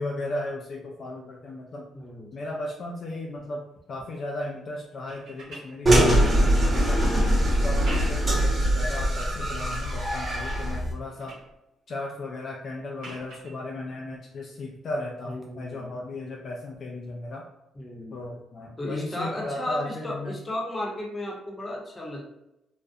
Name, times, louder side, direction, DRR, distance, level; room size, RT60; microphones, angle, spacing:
voice 1, 0.0-1.9 2.3-7.0 7.5-11.4 11.9-17.5 18.1-20.4, left 2 dB, 50° left, -1 dB, 0.3 m, -35 dB
voice 2, 1.9-2.3 15.3-15.9 17.7-18.2 18.8-22.2, left 1 dB, 25° left, -2 dB, 0.7 m, -34 dB
cover sound, 5.0-6.7 7.6-8.4 8.9-9.5 10.0-10.5 10.8-11.5 13.0-13.6 15.3-15.4, right 1 dB, 80° right, 1.0 m, -45 dB
sound 1, 5.9-10.9, right 1 dB, 30° right, 0.9 m, -22 dB
2.4 x 2.0 x 2.6 m, 0.89 s
cardioid pair, 90°, 0 cm